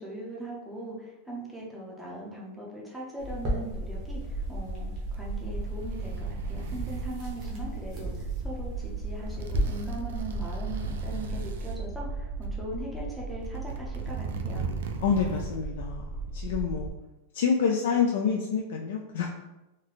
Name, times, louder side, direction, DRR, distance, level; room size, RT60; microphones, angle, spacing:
voice 1, 0.0-14.7, right 1 dB, 5° right, -4 dB, 0.6 m, -40 dB
sound 1, 3.2-9.6, left 1 dB, 30° right, 0.9 m, -38 dB
sound 2, 3.7-16.9, right 3 dB, 30° left, 0.8 m, -36 dB
sound 3, 5.0-7.5 8.8-9.0 9.3-11.8 12.4-12.5 13.3-15.6 15.9-16.0, right 5 dB, 85° right, 0.4 m, -39 dB
voice 2, 15.0-16.0 16.3-16.9 17.3-19.3, left 6 dB, 70° left, -1 dB, 0.4 m, -27 dB
3.1 x 2.1 x 3.9 m, 1.0 s
supercardioid pair, 170°, 0 cm